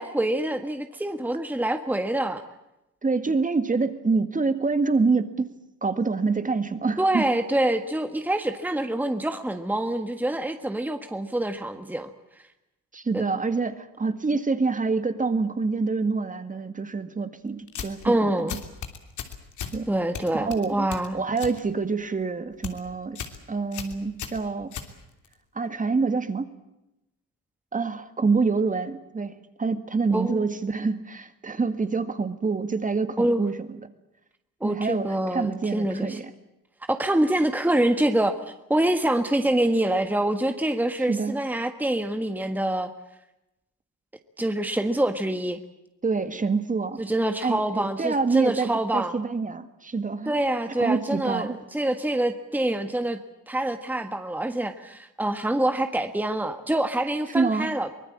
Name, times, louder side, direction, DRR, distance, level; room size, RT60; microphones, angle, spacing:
voice 1, 0.0-2.4 7.0-12.1 13.1-13.2 18.0-18.5 19.9-21.2 30.1-30.4 33.2-33.4 34.6-36.2 36.9-38.4 38.7-42.9 44.4-45.6 47.0-49.1 50.3-53.2 53.5-57.9, right 1 dB, 5° right, 7 dB, 1.6 m, -25 dB
voice 2, 3.0-5.5 5.8-7.3 12.9-18.6 19.7-19.9 20.3-23.2 23.5-24.7 25.6-26.5 27.7-33.9 34.6-36.3 41.0-41.3 46.0-47.0 47.4-50.3 50.8-51.6 57.3-57.7, right 4 dB, 25° right, 10 dB, 1.9 m, -26 dB
sound 1, 17.7-18.1 18.5-19.8 20.1-21.6 21.9-22.2 22.5-22.8 23.2-23.4 23.7-25.3, left 8 dB, 75° left, 3.2 m, -36 dB
24.0 x 20.0 x 8.7 m, 0.91 s
cardioid pair, 90°, 30 cm